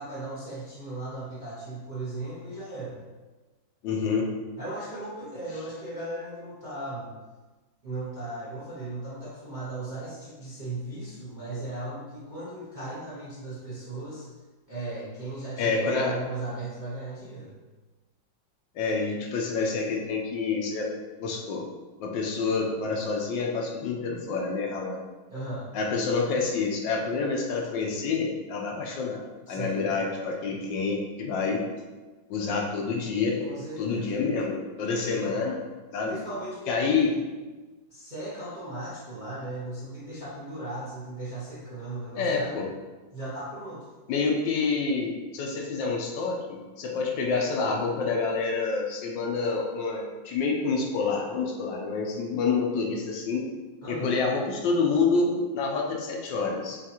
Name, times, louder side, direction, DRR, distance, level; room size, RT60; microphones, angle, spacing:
voice 1, 0.0-3.0 4.6-7.1 7.8-14.3 14.7-17.5 25.3-25.8 29.5-30.0 33.4-34.1 35.0-35.5 36.1-37.2 37.9-42.6 43.1-43.9 53.8-54.2, right 2 dB, 40° right, -9 dB, 0.7 m, -37 dB
voice 2, 3.8-4.2 15.6-16.1 18.7-20.9 21.2-21.7 22.0-25.0 25.7-29.2 29.5-31.7 32.3-33.4 33.8-35.6 35.9-36.1 36.7-37.1 42.2-42.7 44.1-53.5 53.9-56.8, left 4 dB, 80° left, 1 dB, 1.3 m, -27 dB
5.8 x 2.4 x 2.8 m, 1.2 s
omnidirectional pair, 2.1 m